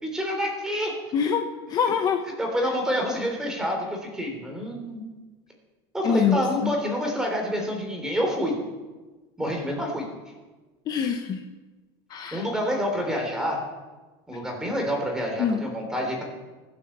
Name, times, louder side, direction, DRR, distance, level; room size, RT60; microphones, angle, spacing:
voice 1, 0.0-0.9 2.4-5.0 5.9-8.5 9.4-10.0 12.3-13.6 14.3-16.2, equal, 5° right, 1 dB, 3.6 m, -27 dB
voice 2, 1.1-1.4 1.7-2.2 6.0-6.7 10.9-11.4 12.1-12.4 15.4-15.6, left 7 dB, 30° left, 6 dB, 1.0 m, -24 dB
23.5 x 8.1 x 6.7 m, 1.3 s
supercardioid pair, 160°, 13 cm